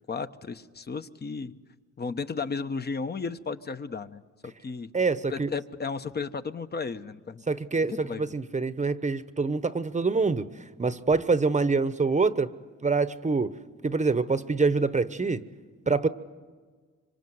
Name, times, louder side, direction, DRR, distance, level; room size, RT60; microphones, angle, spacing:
voice 1, 0.1-1.5 2.0-4.9 5.3-7.4 7.9-8.2, left 5 dB, 35° left, 10 dB, 1.1 m, -34 dB
voice 2, 4.9-5.5 7.5-12.5 12.8-13.6 13.8-15.4 15.9-16.1, right 4 dB, 25° right, 12 dB, 1.0 m, -25 dB
25.5 x 25.0 x 8.0 m, 1.5 s
cardioid pair, 90°, 30 cm